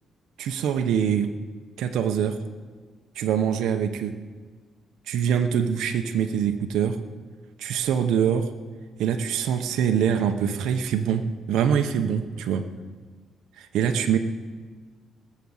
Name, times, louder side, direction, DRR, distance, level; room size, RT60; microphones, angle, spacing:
voice 1, 0.4-1.3 1.8-2.4 3.2-4.1 5.1-7.0 7.6-8.5 9.0-11.2 11.5-12.6 13.6-14.2, right 8 dB, 80° right, 6 dB, 0.8 m, -24 dB
18.5 x 7.5 x 7.2 m, 1.4 s
cardioid pair, 90°, 0 cm